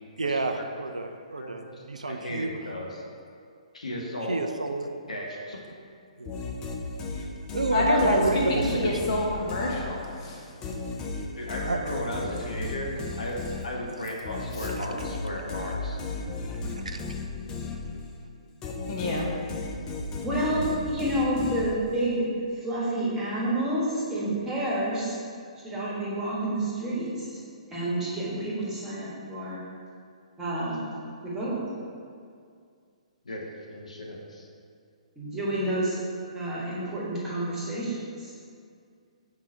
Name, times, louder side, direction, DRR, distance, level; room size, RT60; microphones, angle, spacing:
voice 1, 0.2-2.6 4.2-5.0 6.2-6.4 7.2-7.3 7.5-9.1 11.7-11.8 13.9-14.0 14.7-14.9 16.6-17.1, right 3 dB, 80° right, 6 dB, 0.4 m, -30 dB
voice 2, 1.4-3.0 3.7-4.4 5.1-5.6 11.4-16.0 33.2-33.4 33.7-34.5, left 1 dB, 70° left, -1 dB, 1.1 m, -35 dB
sound 1, 6.2-10.2 10.6-18.2 18.6-22.1, left 3 dB, 20° left, 0.6 m, -35 dB
voice 3, 7.7-10.5 18.9-19.3, left 1 dB, 45° left, -2 dB, 1.2 m, -27 dB
voice 4, 20.2-25.2 25.6-27.4 27.7-29.6 30.4-30.8 31.2-31.6 35.2-36.0 36.3-38.3, right 1 dB, 10° right, -7 dB, 1.5 m, -29 dB
4.8 x 3.7 x 5.5 m, 2.2 s
figure-of-eight pair, 125°, 4 cm